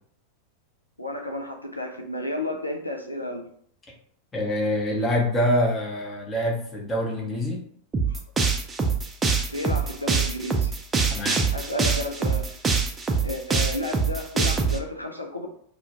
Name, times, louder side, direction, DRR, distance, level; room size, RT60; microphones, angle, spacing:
voice 1, 1.0-3.5 8.1-8.2 9.5-10.7 11.5-12.5 13.2-15.5, left 1 dB, 85° left, 2 dB, 0.3 m, -32 dB
voice 2, 4.3-7.6 11.1-11.4, left 1 dB, 20° left, -2 dB, 0.8 m, -25 dB
sound 1, 7.9-14.8, right 4 dB, 15° right, 0.3 m, -24 dB
2.3 x 2.1 x 2.8 m, 0.63 s
figure-of-eight pair, 90°, 0 cm